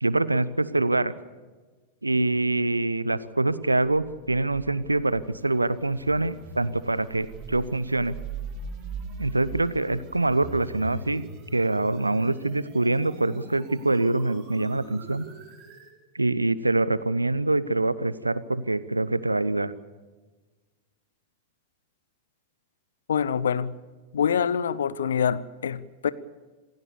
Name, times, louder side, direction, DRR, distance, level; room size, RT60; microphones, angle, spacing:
voice 1, 0.0-1.1 2.0-8.2 9.2-11.2 11.5-15.3 16.1-19.7, right 2 dB, 85° right, 0.9 m, -25 dB
sound 1, 3.8-15.9, right 4 dB, 35° right, 7.1 m, -42 dB
voice 2, 23.1-23.7 24.1-26.1, left 7 dB, 65° left, 0.8 m, -25 dB
27.0 x 16.5 x 7.0 m
figure-of-eight pair, 90°, 0 cm